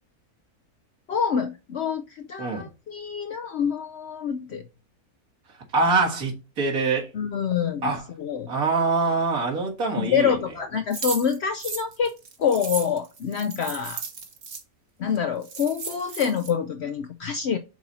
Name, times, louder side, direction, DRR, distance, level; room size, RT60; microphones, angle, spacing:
voice 1, 1.1-4.6 7.1-8.5 10.0-12.1 12.4-14.0 15.0-17.6, left 7 dB, 65° left, 0.7 m, -26 dB
voice 2, 5.7-7.1 7.8-8.0 8.5-10.4, right 3 dB, 70° right, 2.0 m, -24 dB
sound 1, 10.9-14.6 15.2-15.3 15.4-16.5, right 4 dB, 45° right, 1.1 m, -35 dB
6.0 x 4.1 x 4.1 m
omnidirectional pair, 1.6 m